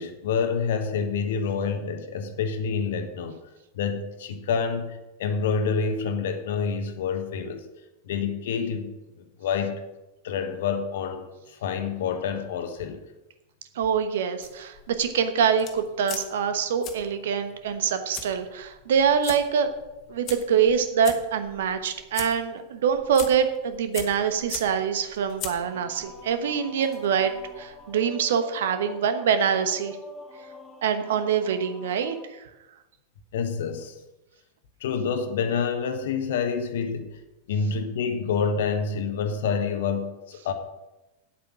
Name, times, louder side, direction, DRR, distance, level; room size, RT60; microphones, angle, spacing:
voice 1, 0.0-3.4 3.7-7.7 8.1-8.9 9.4-9.8 10.2-13.0 20.1-20.2 33.3-33.9 34.8-37.1 37.5-40.5, left 5 dB, 55° left, 8 dB, 1.2 m, -27 dB
voice 2, 13.7-19.7 20.1-30.0 30.8-32.5, right 7 dB, 60° right, 9 dB, 1.1 m, -25 dB
sound 1, 14.4-28.0, left 7 dB, 35° left, 1.4 m, -42 dB
sound 2, 25.6-32.2, left 2 dB, 10° left, 2.0 m, -46 dB
9.2 x 8.3 x 6.1 m, 1.0 s
figure-of-eight pair, 90°, 0 cm